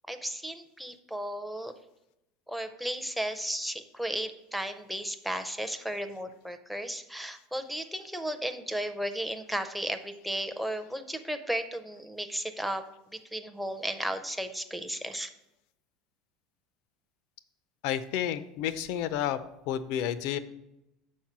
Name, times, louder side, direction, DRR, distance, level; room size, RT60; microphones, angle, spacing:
voice 1, 0.1-1.7 2.5-12.8 13.1-15.3, right 1 dB, ahead, 6 dB, 0.5 m, -34 dB
voice 2, 17.8-19.4 19.7-20.4, left 10 dB, 65° left, 13 dB, 0.5 m, -30 dB
7.2 x 4.4 x 6.0 m, 0.89 s
supercardioid pair, 140°, 0 cm